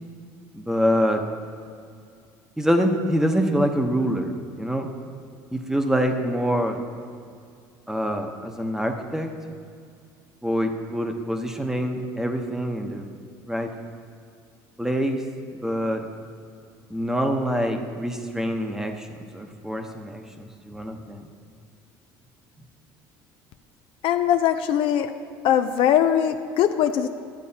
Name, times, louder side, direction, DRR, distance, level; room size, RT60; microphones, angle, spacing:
voice 1, 0.5-1.2 2.6-4.9 5.5-6.8 7.9-9.3 10.4-13.1 13.5-13.7 14.8-15.2 15.6-16.0 16.9-21.2, equal, 5° right, 4 dB, 0.9 m, -25 dB
voice 2, 24.0-25.1 25.4-27.1, left 10 dB, 60° left, 9 dB, 0.4 m, -21 dB
12.0 x 8.3 x 2.8 m, 2.3 s
hypercardioid pair, 75°, 10 cm